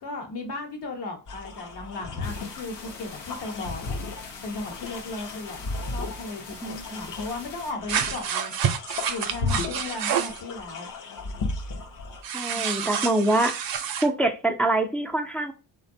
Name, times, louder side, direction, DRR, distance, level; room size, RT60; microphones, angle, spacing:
voice 1, 0.0-4.0 4.4-8.5 9.1-10.9 12.5-12.9, left 2 dB, 65° left, 1.0 m, -36 dB
sound 1, 1.3-12.2, left 3 dB, 45° left, 0.7 m, -35 dB
sound 2, 2.2-7.7, left 4 dB, 90° left, 0.7 m, -43 dB
voice 2, 6.6-7.0 12.3-13.5 14.0-15.5, right 2 dB, 5° left, 0.4 m, -25 dB
sound 3, 7.9-10.4 12.2-14.1, right 8 dB, 55° right, 0.5 m, -28 dB
2.6 x 2.2 x 2.5 m
cardioid pair, 70°, 43 cm